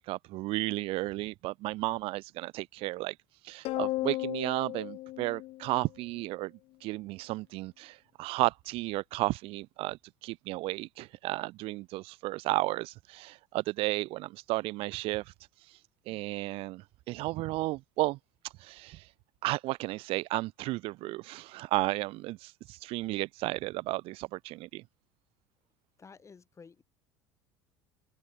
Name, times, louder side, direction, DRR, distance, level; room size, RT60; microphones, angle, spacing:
voice 1, 0.0-3.2 3.4-6.5 6.8-18.2 18.4-19.1 19.4-24.8, right 19 dB, 50° right, 0.5 m, -33 dB
sound 1, 3.6-6.2, left 18 dB, 50° left, 0.7 m, -35 dB
voice 2, 26.0-26.8, left 5 dB, 25° left, 2.6 m, -53 dB
open air
hypercardioid pair, 70°, 12 cm